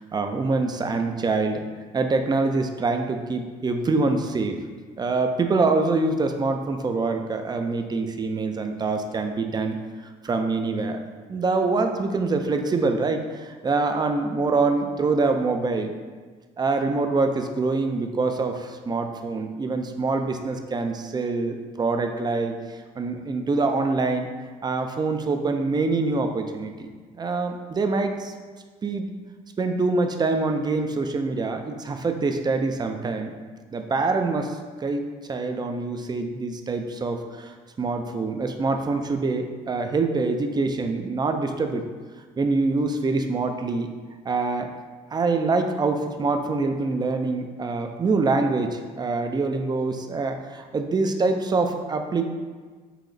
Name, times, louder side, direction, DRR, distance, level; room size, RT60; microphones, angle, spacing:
voice 1, 0.0-1.7 1.9-4.6 5.0-9.8 10.2-15.9 16.6-24.3 24.6-26.9 27.2-28.3 28.8-29.1 29.6-33.3 33.7-41.8 42.4-43.9 44.2-44.7 45.1-52.3, right 3 dB, 25° right, 5 dB, 0.5 m, -25 dB
5.7 x 2.4 x 3.9 m, 1.5 s
supercardioid pair, 85°, 16 cm